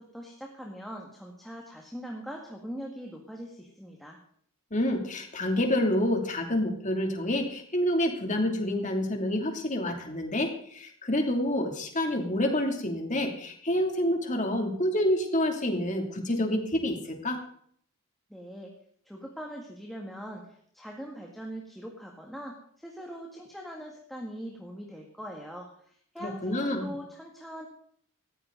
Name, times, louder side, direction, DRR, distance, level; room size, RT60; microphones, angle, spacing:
voice 1, 0.0-4.2 18.3-18.7 19.1-27.7, equal, ahead, -1 dB, 1.9 m, -42 dB
voice 2, 4.7-17.4 26.2-26.9, left 1 dB, 35° left, 3 dB, 2.9 m, -28 dB
18.5 x 14.5 x 4.0 m, 0.62 s
head